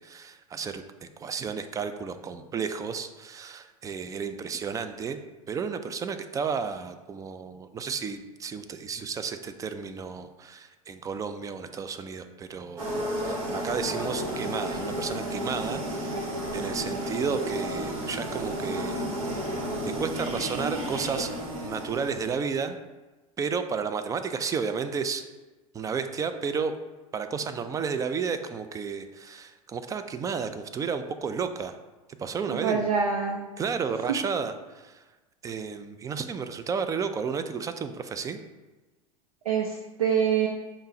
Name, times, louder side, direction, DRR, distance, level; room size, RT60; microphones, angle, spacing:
voice 1, 0.0-5.2 5.5-12.9 13.2-16.2 16.5-19.6 20.0-21.3 21.6-22.8 23.4-25.2 25.7-26.7 27.1-31.8 32.2-32.9 33.6-35.0 35.4-38.4, right 6 dB, 20° right, 10 dB, 0.3 m, -32 dB
sound 1, 12.8-22.6, right 1 dB, 70° right, 1.1 m, -32 dB
voice 2, 32.5-33.5 39.5-40.5, right 6 dB, 85° right, 2 dB, 0.5 m, -25 dB
5.4 x 2.1 x 4.7 m, 1.2 s
hypercardioid pair, 85°, 18 cm